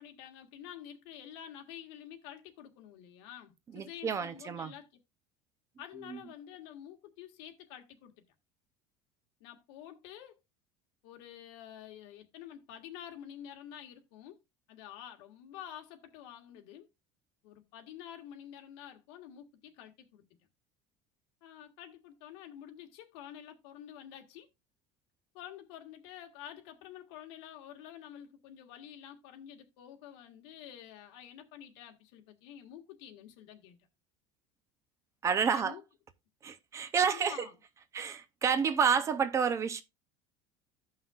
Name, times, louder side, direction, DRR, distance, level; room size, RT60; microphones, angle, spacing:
voice 1, 0.0-4.9 5.8-8.2 9.4-10.4 11.0-14.4 14.7-16.9 17.4-20.3 21.4-24.5 25.3-33.8 35.5-35.8 37.0-37.5, left 10 dB, 85° left, 1.6 m, -49 dB
voice 2, 3.7-4.7 6.1-6.2 35.2-35.8 36.4-37.5 37.9-39.8, right 6 dB, 20° right, 0.5 m, -29 dB
15.5 x 5.6 x 2.3 m
cardioid pair, 175°, 14 cm